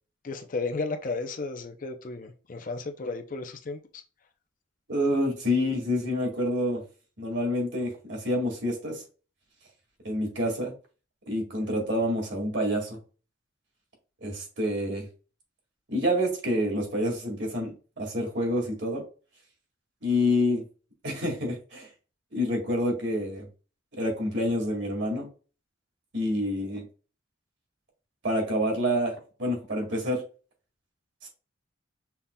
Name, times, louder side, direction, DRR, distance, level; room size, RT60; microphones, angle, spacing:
voice 1, 0.2-3.8, left 3 dB, 40° left, 0.5 m, -33 dB
voice 2, 4.9-6.8 7.2-9.0 10.0-10.7 11.3-13.0 14.2-15.1 15.9-19.0 20.0-20.6 21.0-21.9 22.3-23.4 24.0-25.3 26.1-26.8 28.2-29.1 29.4-30.2 31.2-31.3, left 1 dB, 60° right, 2.0 m, -27 dB
5.6 x 3.6 x 2.2 m
head